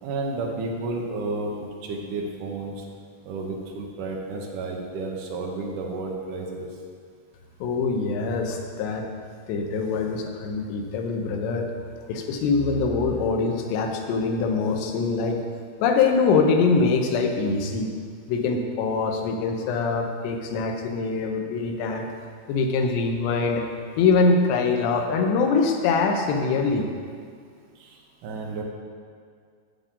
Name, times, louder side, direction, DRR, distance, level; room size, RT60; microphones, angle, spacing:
voice 1, 0.0-1.5 1.8-2.9 3.2-6.7 27.8-28.6, right 3 dB, 75° right, 0 dB, 1.9 m, -31 dB
voice 2, 7.6-9.1 9.5-11.7 12.1-15.4 15.8-17.9 18.3-22.1 22.5-23.7 24.0-26.9, left 4 dB, 90° left, 3 dB, 3.1 m, -23 dB
9.5 x 8.2 x 3.7 m, 2.1 s
omnidirectional pair, 4.8 m